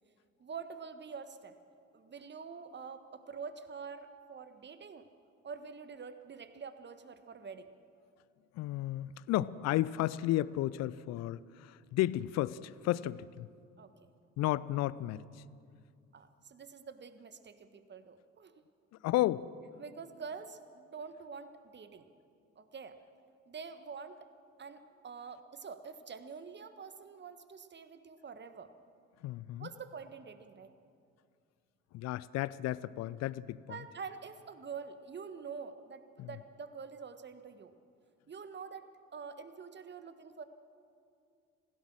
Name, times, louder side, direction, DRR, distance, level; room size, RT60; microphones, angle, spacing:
voice 1, 0.4-1.5 1.9-5.1 5.4-7.7 13.8-14.1 16.1-18.5 19.8-22.1 22.5-23.0 23.5-24.3 24.6-28.7 29.6-30.7 33.7-37.7 38.3-40.4, right 5 dB, 30° right, 10 dB, 1.5 m, -46 dB
voice 2, 8.6-13.5 14.4-15.2 19.0-19.5 29.2-29.7 31.9-33.7 36.2-36.3, left 15 dB, 45° left, 20 dB, 0.6 m, -33 dB
26.0 x 16.5 x 6.2 m, 2.4 s
figure-of-eight pair, 55°, 38 cm